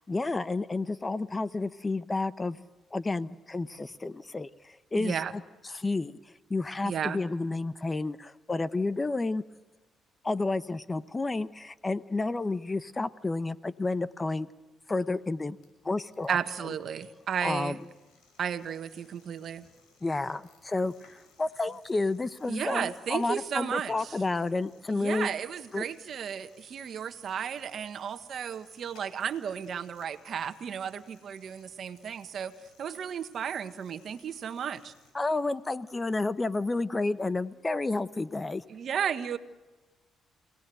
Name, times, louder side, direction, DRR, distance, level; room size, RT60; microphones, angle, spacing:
voice 1, 0.0-5.4 5.7-6.2 6.5-9.4 10.2-14.5 14.9-15.6 15.8-16.4 16.6-16.7 17.4-17.8 20.0-25.3 25.7-25.9 35.1-38.6, left 3 dB, 25° left, 15 dB, 0.8 m, -31 dB
voice 2, 5.0-5.3 6.8-7.2 16.3-17.8 18.4-19.6 22.5-24.1 24.9-32.5 32.8-34.9 38.7-39.4, right 8 dB, 60° right, 10 dB, 1.5 m, -34 dB
sound 1, 15.3-35.1, left 4 dB, 85° left, 6.3 m, -63 dB
30.0 x 18.0 x 7.9 m, 1.2 s
cardioid pair, 90°, 0 cm